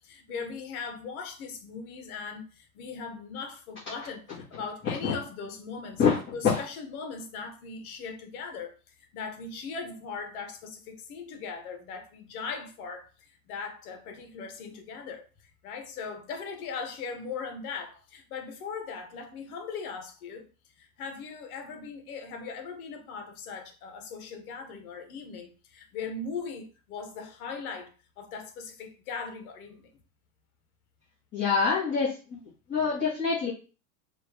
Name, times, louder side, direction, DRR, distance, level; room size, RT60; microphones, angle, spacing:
voice 1, 0.0-6.0 6.3-15.2 15.6-20.4 20.8-29.9, left 5 dB, 70° left, 1.3 m, -39 dB
voice 2, 31.3-32.4 32.7-33.5, left 5 dB, 25° left, 1.7 m, -25 dB
4.2 x 2.7 x 3.4 m
supercardioid pair, 135°, 44 cm